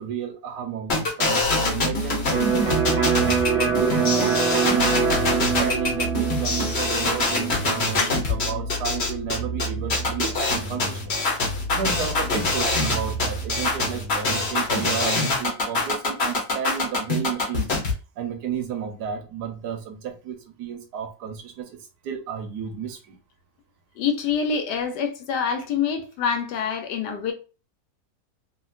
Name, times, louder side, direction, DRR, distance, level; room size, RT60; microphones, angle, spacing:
voice 1, 0.0-4.9 5.3-11.2 11.7-17.7 18.2-21.7 22.0-23.1, right 8 dB, 75° right, 1.1 m, -32 dB
sound 1, 0.9-17.9, left 2 dB, 45° left, 1.0 m, -24 dB
sound 2, 1.4-14.7, right 1 dB, 30° right, 1.0 m, -34 dB
Electric guitar, 2.3-10.0, right 5 dB, 55° right, 0.9 m, -25 dB
voice 2, 24.0-27.3, left 6 dB, 75° left, 1.2 m, -26 dB
3.0 x 2.8 x 2.3 m
omnidirectional pair, 1.9 m